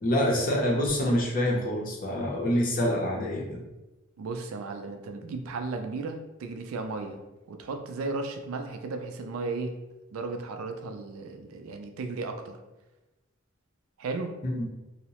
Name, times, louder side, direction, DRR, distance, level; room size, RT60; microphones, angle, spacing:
voice 1, 0.0-3.6 14.4-14.5, equal, 40° left, -1 dB, 0.6 m, -26 dB
voice 2, 4.2-7.2 7.5-9.8 10.1-12.6 14.0-14.3, right 3 dB, 85° right, 5 dB, 0.4 m, -35 dB
2.7 x 2.0 x 2.8 m, 1.1 s
head